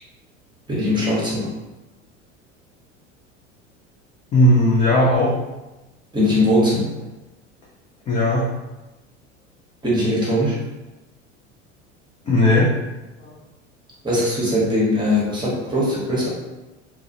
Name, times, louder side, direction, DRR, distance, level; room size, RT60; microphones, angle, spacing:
voice 1, 0.7-1.5 6.1-6.9 9.8-10.5 14.0-16.3, left 1 dB, 10° right, -6 dB, 0.9 m, -20 dB
voice 2, 4.3-5.3 8.1-8.5 12.3-12.7 13.2-13.3, left 1 dB, 20° left, -6 dB, 0.3 m, -16 dB
2.3 x 2.1 x 2.6 m, 1.1 s
figure-of-eight pair, 75°, 37 cm